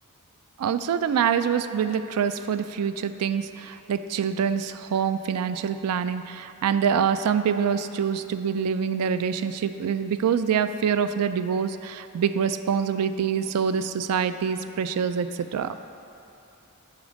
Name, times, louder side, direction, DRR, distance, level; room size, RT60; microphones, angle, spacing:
voice 1, 0.6-15.7, right 7 dB, 80° right, 11 dB, 0.3 m, -25 dB
8.3 x 4.8 x 5.1 m, 2.9 s
head